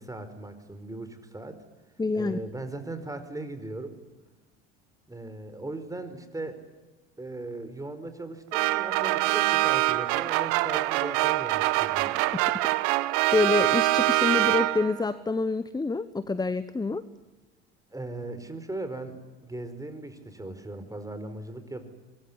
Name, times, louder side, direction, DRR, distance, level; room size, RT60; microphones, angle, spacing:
voice 1, 0.0-1.6 2.1-4.0 5.1-6.6 7.2-12.2 17.9-21.9, right 2 dB, 10° right, 10 dB, 4.8 m, -38 dB
voice 2, 2.0-2.4 12.9-17.0, left 3 dB, 10° left, 14 dB, 1.1 m, -27 dB
sound 1, 8.5-15.1, right 18 dB, 65° right, 1.1 m, -24 dB
25.0 x 21.5 x 10.0 m, 1.2 s
hypercardioid pair, 70°, 32 cm